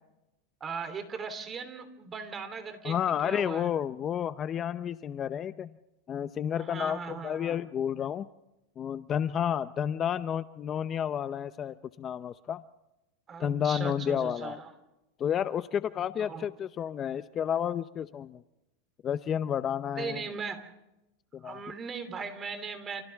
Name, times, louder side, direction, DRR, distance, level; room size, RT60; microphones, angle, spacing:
voice 1, 0.6-3.7 6.6-7.6 13.3-14.7 16.2-16.5 19.9-20.7 21.4-23.0, right 5 dB, 25° right, 9 dB, 3.3 m, -38 dB
voice 2, 2.8-5.7 6.1-8.3 8.8-12.6 13.4-14.6 15.2-18.4 19.0-20.2 21.3-21.6, left 9 dB, 30° left, 13 dB, 0.7 m, -31 dB
30.0 x 28.5 x 3.6 m, 0.95 s
supercardioid pair, 130°, 0 cm